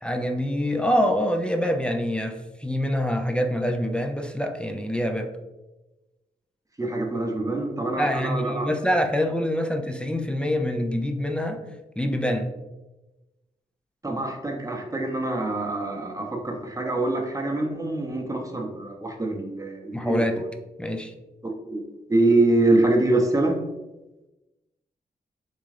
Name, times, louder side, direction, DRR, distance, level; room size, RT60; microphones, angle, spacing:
voice 1, 0.0-5.3 8.0-11.6 12.0-12.5 19.9-20.5 20.8-21.1, equal, 5° left, 5 dB, 0.4 m, -25 dB
voice 2, 6.8-8.7 14.0-20.5 21.4-21.8 22.1-23.6, right 2 dB, 20° right, 2 dB, 0.8 m, -25 dB
3.6 x 2.3 x 3.2 m, 1.1 s
cardioid pair, 45°, 18 cm